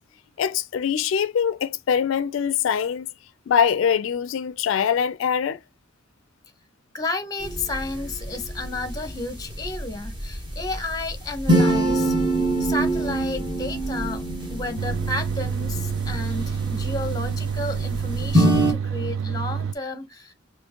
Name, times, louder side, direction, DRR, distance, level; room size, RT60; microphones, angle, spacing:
voice 1, 0.4-3.1 3.5-5.6, left 7 dB, 80° left, 0.3 m, -23 dB
voice 2, 6.9-12.1 12.6-20.3, left 2 dB, 20° left, 0.8 m, -32 dB
sound 1, 7.4-18.7, right 1 dB, 25° right, 1.1 m, -25 dB
sound 2, 14.8-19.7, right 7 dB, 75° right, 0.3 m, -28 dB
4.4 x 2.9 x 2.8 m
head